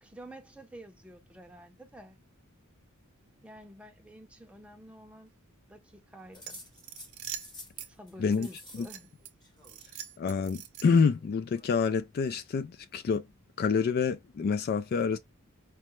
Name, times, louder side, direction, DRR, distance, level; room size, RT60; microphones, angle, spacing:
voice 1, 0.0-2.2 3.4-5.3 5.7-6.6 7.9-9.1, right 1 dB, 5° right, 0.6 m, -50 dB
sound 1, 6.3-7.8 8.1-8.9 9.2-10.0 11.1-11.8, left 2 dB, 20° left, 0.9 m, -51 dB
sound 2, 6.4-7.9 8.4-9.3 9.6-11.1, right 10 dB, 70° right, 0.7 m, -43 dB
voice 2, 10.2-13.2 13.6-15.2, left 5 dB, 45° left, 0.3 m, -27 dB
4.6 x 2.1 x 3.0 m
head